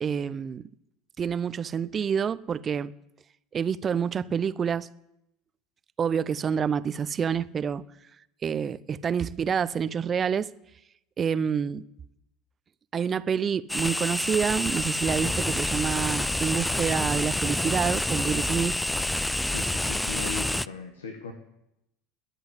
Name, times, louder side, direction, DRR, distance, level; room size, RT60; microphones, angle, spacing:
voice 1, 0.0-0.7 1.2-2.9 3.5-4.9 6.0-7.8 8.4-10.5 11.2-11.9 12.9-18.8, right 7 dB, 35° right, 0.8 m, -27 dB
sound 1, 13.7-20.7, left 1 dB, 5° left, 0.5 m, -28 dB
voice 2, 19.5-21.3, left 4 dB, 85° left, 1.8 m, -38 dB
21.5 x 8.0 x 8.5 m
hypercardioid pair, 75°, 0 cm